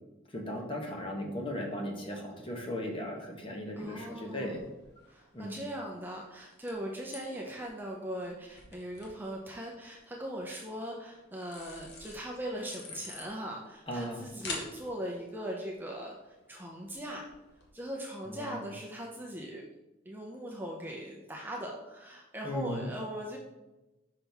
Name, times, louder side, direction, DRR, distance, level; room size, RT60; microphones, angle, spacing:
voice 1, 0.3-4.6 5.3-5.6 13.9-14.2 18.3-18.7 22.4-22.9, equal, 25° left, 1 dB, 1.0 m, -37 dB
sound 1, 3.6-17.7, left 3 dB, 55° left, 1.2 m, -50 dB
voice 2, 3.8-4.5 5.1-17.3 17.7-19.6 20.1-23.4, equal, 10° right, -1 dB, 0.6 m, -40 dB
6.0 x 5.7 x 3.4 m, 1.0 s
head